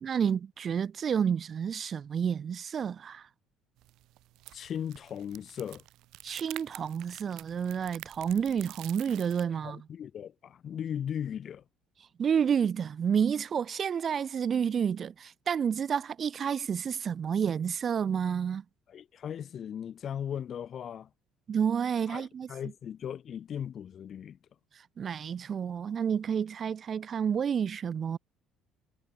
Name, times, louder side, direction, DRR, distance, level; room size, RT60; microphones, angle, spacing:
voice 1, 0.0-3.3 6.2-9.8 12.2-18.6 21.5-22.5 24.7-28.2, right 7 dB, 40° right, 0.5 m, -30 dB
sound 1, 3.8-9.4, right 17 dB, 70° right, 1.0 m, -49 dB
voice 2, 4.5-5.8 9.6-11.6 18.9-21.1 22.1-24.4, left 9 dB, 45° left, 1.8 m, -37 dB
cardioid pair, 120°, 0 cm